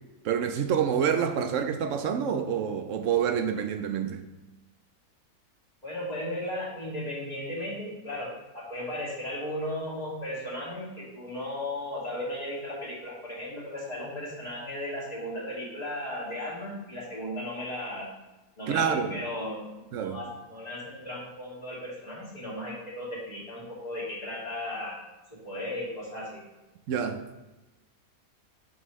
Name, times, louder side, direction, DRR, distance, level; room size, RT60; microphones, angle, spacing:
voice 1, 0.2-4.2 18.7-19.2 19.9-20.2 26.9-27.3, right 7 dB, 65° right, 0.9 m, -27 dB
voice 2, 5.8-18.1 18.6-19.6 20.0-25.0 25.3-26.4, left 1 dB, 25° left, 2.3 m, -36 dB
7.1 x 6.2 x 3.1 m
omnidirectional pair, 1.6 m